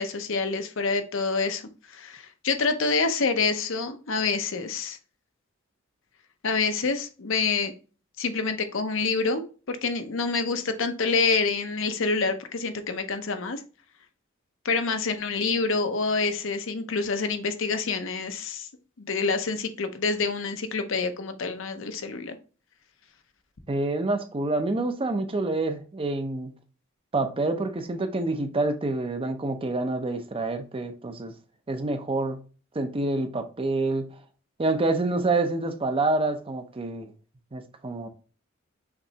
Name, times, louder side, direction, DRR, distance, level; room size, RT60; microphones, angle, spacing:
voice 1, 0.0-1.6 1.9-5.0 6.4-7.7 8.2-13.6 14.6-18.7 19.0-22.4, left 4 dB, 65° left, 0.7 m, -27 dB
voice 2, 23.7-26.5 27.1-31.3 31.7-32.4 32.7-34.1 34.6-37.1 37.5-38.1, right 2 dB, 25° right, 0.6 m, -27 dB
6.0 x 3.2 x 2.8 m
head